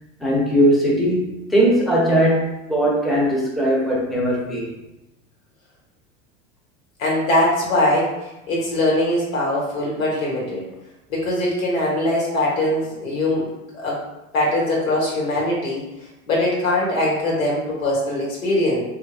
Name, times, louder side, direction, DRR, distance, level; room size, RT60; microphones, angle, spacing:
voice 1, 0.2-4.7, equal, ahead, -4 dB, 0.7 m, -19 dB
voice 2, 7.0-8.1 8.5-10.6 11.1-14.0 14.3-15.8 16.3-18.8, left 1 dB, 85° left, -4 dB, 1.3 m, -21 dB
3.1 x 2.5 x 2.4 m, 0.95 s
hypercardioid pair, 95°, 40 cm